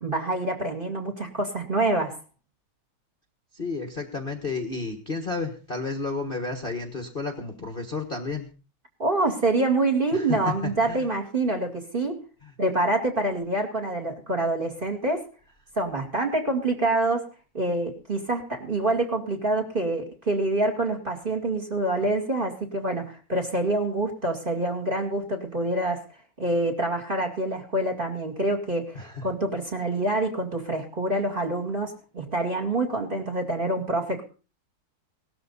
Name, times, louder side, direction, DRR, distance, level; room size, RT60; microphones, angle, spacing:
voice 1, 0.0-2.2 9.0-12.2 12.6-15.3 15.8-17.3 17.5-26.1 26.4-34.2, right 2 dB, 25° right, 4 dB, 2.3 m, -26 dB
voice 2, 3.5-8.5 10.1-11.0 12.4-12.5 28.9-29.2, left 3 dB, 30° left, 5 dB, 1.4 m, -32 dB
18.0 x 13.0 x 4.1 m, 0.35 s
omnidirectional pair, 2.3 m